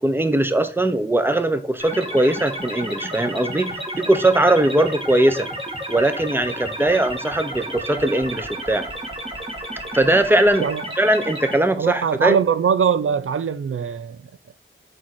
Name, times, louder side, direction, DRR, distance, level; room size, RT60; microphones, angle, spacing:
voice 1, 0.0-5.5 5.9-8.9 9.9-10.7 11.0-12.4, right 1 dB, 10° right, 0.8 m, -20 dB
sound 1, 1.8-11.6, right 1 dB, 25° right, 1.9 m, -31 dB
voice 2, 11.8-14.2, right 7 dB, 80° right, 0.5 m, -21 dB
7.3 x 4.6 x 4.3 m
wide cardioid pair, 80°, 21 cm